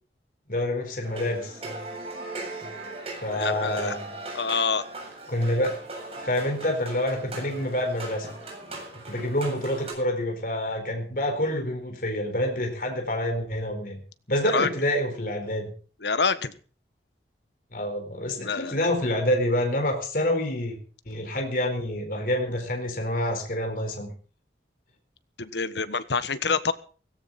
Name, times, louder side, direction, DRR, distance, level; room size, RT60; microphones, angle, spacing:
voice 1, 0.5-1.5 3.2-4.2 5.3-5.7 6.2-8.3 9.1-14.0 14.3-15.6 17.7-20.8 21.1-24.1, left 1 dB, 50° left, 3 dB, 4.4 m, -27 dB
sound 1, 1.0-9.9, right 2 dB, 35° right, 7.7 m, -39 dB
voice 2, 3.3-4.0 4.3-4.8 14.5-14.7 16.0-16.5 18.4-18.7 25.4-26.7, left 5 dB, 75° left, 12 dB, 1.4 m, -26 dB
17.0 x 17.0 x 4.2 m, 0.39 s
head